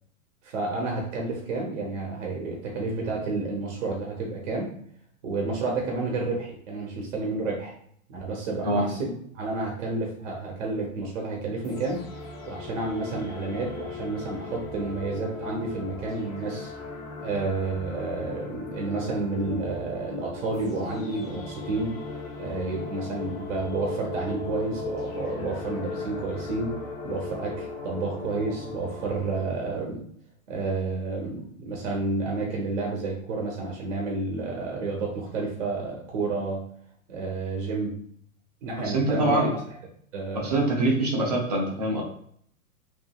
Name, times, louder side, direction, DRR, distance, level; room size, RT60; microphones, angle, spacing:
voice 1, 0.4-4.7 5.2-7.7 8.1-12.0 12.5-16.7 17.2-21.9 22.4-26.7 27.0-30.0 30.5-36.6 37.1-38.0 38.6-39.4 40.1-40.6, right 3 dB, 55° right, -1 dB, 0.8 m, -30 dB
sound 1, 11.6-29.4, left 3 dB, 30° left, 0.4 m, -37 dB
voice 2, 38.8-39.5 40.3-42.0, right 2 dB, 30° right, 0 dB, 0.4 m, -24 dB
2.9 x 2.5 x 2.2 m, 0.64 s
hypercardioid pair, 155°, 44 cm